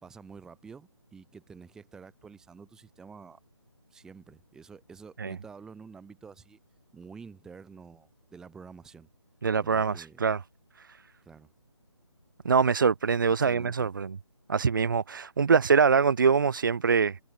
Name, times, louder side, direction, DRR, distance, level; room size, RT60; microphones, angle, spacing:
voice 1, 0.0-3.4 3.9-6.6 6.9-9.1 9.6-10.2 11.2-11.5 13.3-13.9, right 5 dB, 5° right, 1.7 m, -49 dB
voice 2, 9.4-10.4 10.8-11.0 12.4-14.2 14.5-17.2, right 5 dB, 40° right, 0.5 m, -24 dB
figure-of-eight pair, 155°, 16 cm